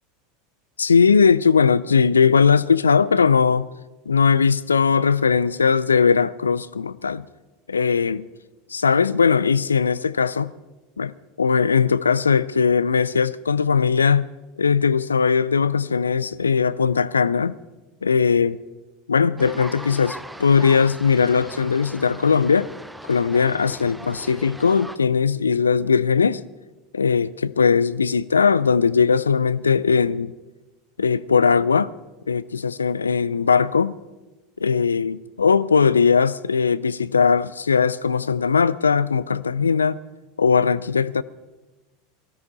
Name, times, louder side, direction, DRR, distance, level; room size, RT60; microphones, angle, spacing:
voice 1, 0.8-3.7 4.1-7.3 7.7-8.3 8.7-10.5 11.0-14.3 14.6-17.6 18.0-18.6 19.1-22.7 23.1-26.4 26.9-30.3 31.0-31.9 32.3-33.9 34.6-40.0 40.4-41.2, left 5 dB, 85° left, 0.3 m, -19 dB
sound 1, 19.4-25.0, right 1 dB, 5° right, 0.6 m, -39 dB
18.5 x 13.0 x 4.1 m
figure-of-eight pair, 80°, 0 cm